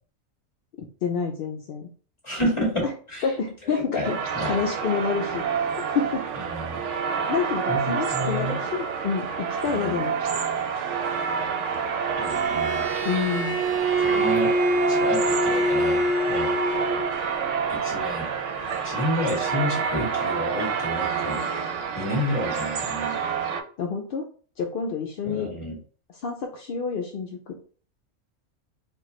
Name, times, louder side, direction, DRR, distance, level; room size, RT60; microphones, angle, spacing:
voice 1, 0.8-1.9 2.8-2.9 3.2-4.2 4.4-5.4 5.9-6.3 7.3-10.2 13.0-13.6 23.8-24.3 24.6-25.5 26.1-27.6, left 6 dB, 60° left, 2 dB, 0.6 m, -28 dB
voice 2, 2.2-3.2 3.7-4.6 6.4-6.9 7.7-8.6 9.6-10.0 12.2-12.8 14.0-14.5 14.9-16.0 16.3-16.5 17.7-18.3 18.8-21.4 21.9-23.2 25.2-25.8, equal, 25° left, -3 dB, 1.5 m, -30 dB
sound 1, 4.0-23.6, right 6 dB, 70° right, 0.9 m, -28 dB
Bowed string instrument, 12.3-17.1, equal, 55° right, 0.5 m, -25 dB
4.4 x 2.3 x 3.0 m, 0.42 s
omnidirectional pair, 1.4 m